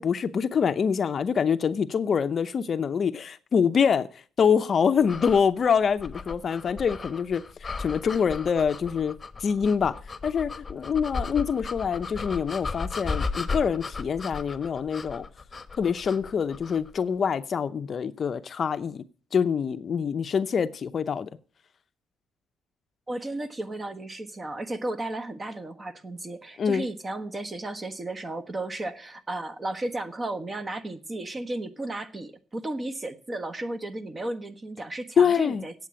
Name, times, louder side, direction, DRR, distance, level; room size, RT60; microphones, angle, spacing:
voice 1, 0.0-9.1 9.4-10.0 10.2-15.3 15.8-19.0 19.3-21.3 26.6-26.9 35.2-35.7, left 6 dB, 45° left, 0.6 m, -25 dB
sound 1, 5.0-16.9, left 4 dB, 25° left, 1.0 m, -36 dB
voice 2, 23.1-35.7, right 2 dB, 25° right, 1.3 m, -34 dB
8.9 x 7.7 x 8.5 m
cardioid pair, 85°, 0 cm